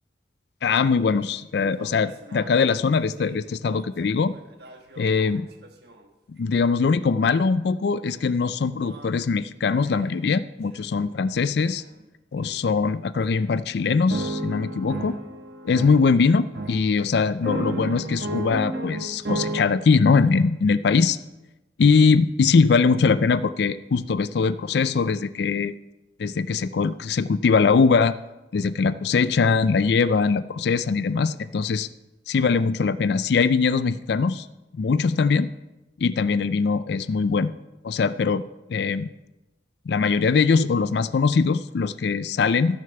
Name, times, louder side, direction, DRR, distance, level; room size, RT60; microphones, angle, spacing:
voice 1, 0.6-4.3 5.0-5.5 6.3-11.8 12.3-15.2 15.6-21.2 21.8-25.7 26.2-28.2 28.5-31.9 32.3-34.5 34.7-35.5 36.0-37.5 37.8-38.4 38.7-39.1 39.9-42.8, left 5 dB, 60° left, 15 dB, 0.4 m, -21 dB
sound 1, 1.1-1.2 1.6-5.9 7.3-7.4 8.1-8.3 8.8-9.2 9.8-10.2 10.8-11.1 11.6-11.8 12.4-12.6 13.2-13.4 14.1-19.6, right 2 dB, 55° right, 1.3 m, -34 dB
14.0 x 6.4 x 6.9 m, 1.0 s
head